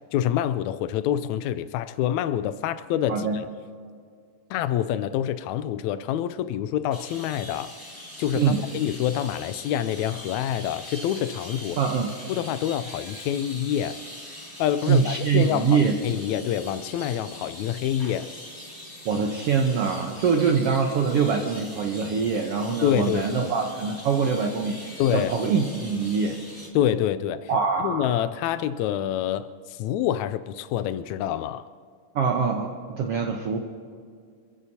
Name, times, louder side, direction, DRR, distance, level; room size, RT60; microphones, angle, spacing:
voice 1, 0.1-3.3 4.5-7.7 8.2-11.8 12.3-14.0 14.6-18.3 22.8-23.5 25.0-25.3 26.7-27.5 27.8-31.6, left 11 dB, 85° left, 12 dB, 1.6 m, -26 dB
sound 1, 6.9-26.7, left 1 dB, 10° left, 1.6 m, -42 dB
voice 2, 11.8-12.1 14.8-15.9 19.0-26.4 27.5-28.2 32.1-33.6, right 5 dB, 65° right, 3 dB, 1.5 m, -24 dB
26.5 x 15.0 x 2.8 m, 2.2 s
omnidirectional pair, 3.8 m